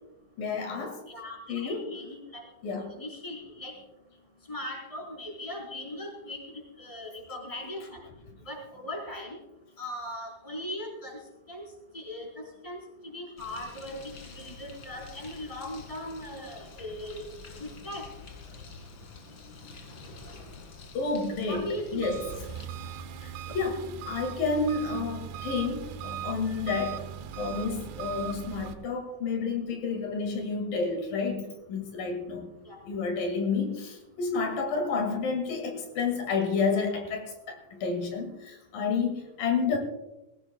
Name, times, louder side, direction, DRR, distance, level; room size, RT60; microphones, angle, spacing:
voice 1, 0.4-1.0 1.5-1.8 2.6-2.9 20.9-22.2 23.2-23.8 24.1-27.1 27.4-32.5 32.9-39.8, left 4 dB, 80° left, 4 dB, 3.8 m, -30 dB
voice 2, 1.1-3.7 4.5-6.4 6.8-8.0 8.5-9.4 9.8-11.2 11.5-11.6 11.9-12.8 13.0-17.3 17.6-18.1 21.4-22.0 32.7-32.8, left 1 dB, 10° left, -1 dB, 4.1 m, -39 dB
Bird, 13.4-22.7, left 4 dB, 40° left, 2.0 m, -47 dB
Engine, 22.0-28.7, right 8 dB, 85° right, 2.8 m, -39 dB
21.0 x 16.5 x 2.3 m, 0.98 s
omnidirectional pair, 3.9 m